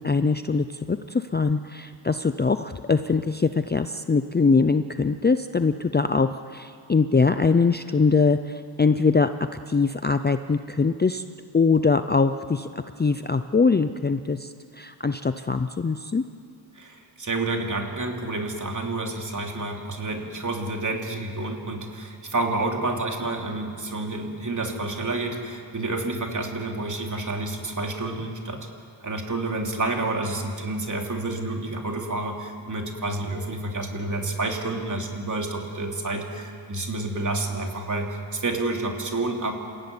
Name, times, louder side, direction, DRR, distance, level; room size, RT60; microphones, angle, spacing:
voice 1, 0.0-9.3 9.7-11.2 11.5-16.2, left 4 dB, 20° left, 10 dB, 0.5 m, -22 dB
voice 2, 16.7-28.7 29.0-39.5, right 2 dB, 40° right, 2 dB, 3.2 m, -29 dB
29.0 x 15.0 x 9.7 m, 2.3 s
wide cardioid pair, 130°, 47 cm